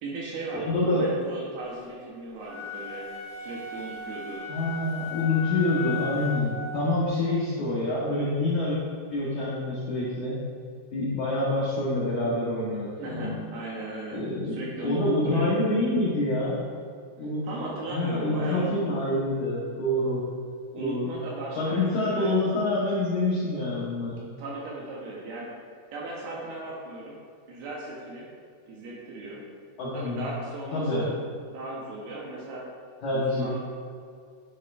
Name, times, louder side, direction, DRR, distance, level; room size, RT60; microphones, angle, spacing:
voice 1, 0.0-4.5 13.0-15.5 17.4-19.0 20.7-22.3 24.4-25.5 25.9-27.2 27.5-28.3 28.6-29.4 29.9-31.1 31.5-32.6 33.1-33.6, right 2 dB, 75° right, -4 dB, 2.5 m, -37 dB
voice 2, 0.5-1.2 4.5-8.8 9.1-10.4 10.9-13.4 14.1-16.6 17.2-17.5 17.9-20.2 20.8-21.1 21.6-24.2 29.8-30.3 30.7-31.1 33.0-33.5, left 2 dB, 80° left, -7 dB, 1.7 m, -26 dB
sound 1, 2.4-6.7, left 5 dB, 55° right, 3.1 m, -36 dB
11.0 x 6.4 x 2.5 m, 2.2 s
omnidirectional pair, 5.2 m